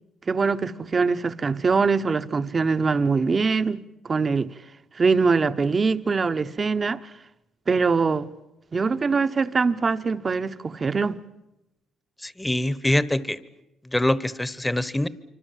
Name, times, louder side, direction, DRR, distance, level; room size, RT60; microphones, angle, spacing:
voice 1, 0.3-4.5 4.9-7.1 7.7-8.3 8.7-11.2, right 4 dB, 35° right, 1.0 m, -23 dB
voice 2, 12.2-13.4 13.9-15.1, left 1 dB, 10° left, 1.2 m, -24 dB
26.0 x 25.0 x 7.5 m
cardioid pair, 90°, 0 cm